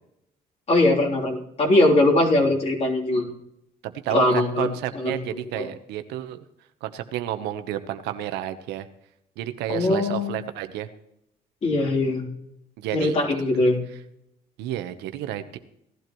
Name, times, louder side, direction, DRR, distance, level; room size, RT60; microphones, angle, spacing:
voice 1, 0.7-3.3 4.1-4.7 4.9-5.2 5.6-5.7 9.7-10.4 11.6-12.2 12.9-13.8, left 2 dB, 40° left, -2 dB, 3.4 m, -21 dB
voice 2, 3.8-6.4 6.8-8.9 9.4-10.9 12.8-13.1 14.6-15.6, right 12 dB, 90° right, 10 dB, 1.0 m, -31 dB
18.0 x 12.0 x 3.1 m, 0.78 s
cardioid pair, 110°, 17 cm